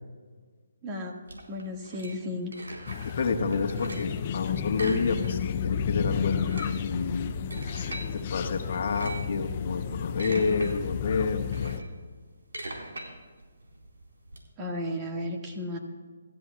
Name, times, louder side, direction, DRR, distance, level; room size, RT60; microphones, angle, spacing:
voice 1, 0.8-1.2 1.5-2.5 14.6-15.8, left 1 dB, 20° right, 1 dB, 1.8 m, -34 dB
sound 1, 1.3-3.2 3.5-4.2 4.7-5.6 5.9-6.0 6.3-8.1 8.7-9.3 9.9-10.7 11.1-14.4, right 2 dB, 85° right, 4.3 m, -41 dB
sound 2, 2.9-11.8, left 8 dB, 35° left, 0.5 m, -32 dB
voice 2, 3.0-7.3 8.1-11.8, left 4 dB, 55° left, 3 dB, 1.5 m, -29 dB
25.5 x 14.0 x 2.4 m, 1.5 s
hypercardioid pair, 155°, 0 cm